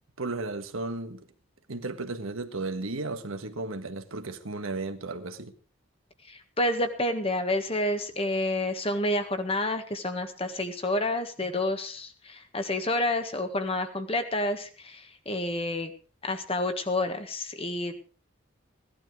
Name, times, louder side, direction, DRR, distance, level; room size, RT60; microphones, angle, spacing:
voice 1, 0.2-1.2 1.7-5.5, right 3 dB, 80° right, 1.6 m, -34 dB
voice 2, 6.3-15.9 16.2-18.0, left 1 dB, 25° left, 1.6 m, -29 dB
17.0 x 12.0 x 4.8 m
head